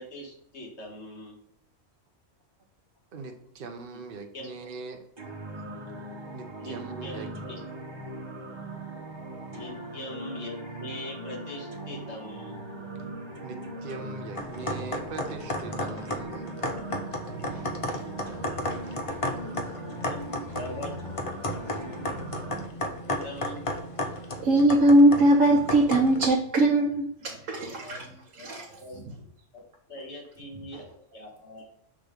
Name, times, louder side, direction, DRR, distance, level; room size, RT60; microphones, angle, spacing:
voice 1, 0.0-1.4 3.9-4.0 4.3-4.7 6.6-7.6 9.5-12.6 19.2-20.9 21.5-21.8 23.2-23.7 27.7-28.5 28.8-29.1 29.5-29.6 29.9-31.6, left 1 dB, 60° left, -2 dB, 1.8 m, -42 dB
voice 2, 3.1-5.0 6.3-7.3 13.4-16.5 17.1-18.1 21.4-21.6, right 4 dB, 50° right, 4 dB, 0.8 m, -41 dB
sound 1, 5.2-22.6, right 1 dB, 20° right, 1.1 m, -40 dB
sound 2, 14.3-26.3, left 1 dB, 35° left, 0.6 m, -34 dB
voice 3, 17.5-18.3 18.6-19.2 24.4-28.0 28.4-28.7, right 1 dB, 80° right, -2 dB, 1.3 m, -22 dB
6.2 x 3.6 x 5.1 m, 0.70 s
omnidirectional pair, 1.3 m